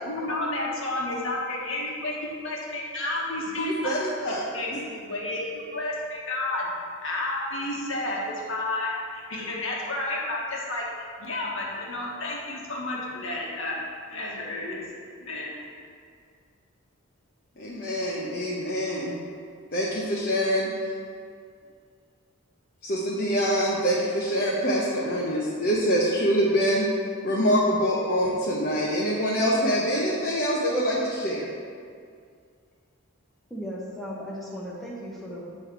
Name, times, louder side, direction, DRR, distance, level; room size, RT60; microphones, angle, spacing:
voice 1, 0.0-3.9 4.3-6.7 7.0-13.8 14.1-14.8 15.2-15.5, left 2 dB, 65° left, -4 dB, 1.4 m, -31 dB
voice 2, 3.6-4.5 17.6-19.2 19.7-20.7 22.8-26.9 27.2-31.5, equal, 45° left, -5 dB, 0.8 m, -25 dB
voice 3, 33.5-35.5, equal, ahead, -6 dB, 0.8 m, -36 dB
8.3 x 3.2 x 6.0 m, 2.2 s
head